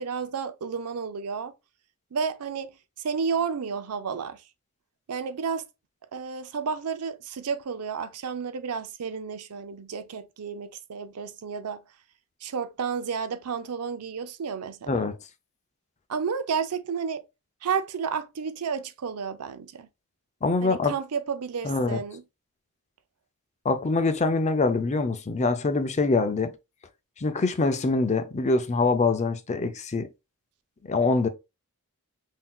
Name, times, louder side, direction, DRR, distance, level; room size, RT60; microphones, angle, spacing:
voice 1, 0.0-1.5 2.1-4.4 5.1-5.7 6.1-11.8 12.4-15.0 16.1-17.2 17.6-19.9 20.6-22.2, right 6 dB, 80° right, 0.5 m, -31 dB
voice 2, 20.4-20.9 21.6-22.0 23.6-26.5 27.2-30.1 30.8-31.3, left 3 dB, 30° left, 0.5 m, -24 dB
5.7 x 2.7 x 2.3 m
head